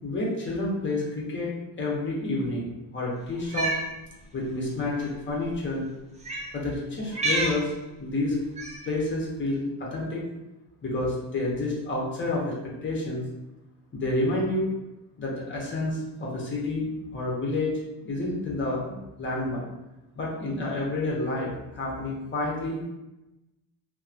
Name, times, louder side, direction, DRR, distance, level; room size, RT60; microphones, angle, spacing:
voice 1, 0.0-1.5 1.8-2.7 2.9-3.7 4.3-5.9 6.5-7.7 8.0-8.4 8.9-10.2 10.8-12.5 12.8-13.2 13.9-14.7 15.2-17.8 18.0-19.6 20.1-22.8, left 2 dB, 30° left, -4 dB, 0.8 m, -29 dB
Cat, 3.4-3.8 4.9-5.1 6.2-6.5 7.1-7.6 8.6-8.9, right 2 dB, 20° right, 0.4 m, -29 dB
2.8 x 2.1 x 2.4 m, 0.97 s
cardioid pair, 135°, 40 cm